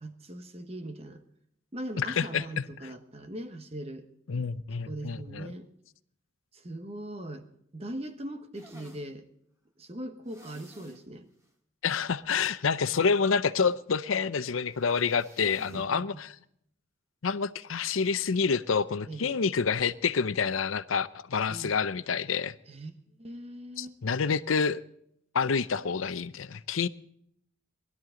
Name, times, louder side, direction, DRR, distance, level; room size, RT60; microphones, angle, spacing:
voice 1, 0.0-1.2 1.7-4.0 4.9-5.7 6.5-7.5 7.7-9.2 9.8-11.3 15.7-16.2 19.1-19.4 21.5-21.7 22.7-24.0, right 1 dB, 30° right, 1.2 m, -40 dB
voice 2, 2.0-2.9 4.3-5.5 11.8-16.4 17.2-22.5 23.8-24.8 25.3-26.9, left 5 dB, 85° left, 0.6 m, -28 dB
sound 1, 8.5-9.1 10.3-11.0 11.4-11.5 11.9-12.0 14.7-15.9 16.2-16.3 17.9-18.2, left 1 dB, 15° right, 2.0 m, -54 dB
20.0 x 12.5 x 3.8 m
head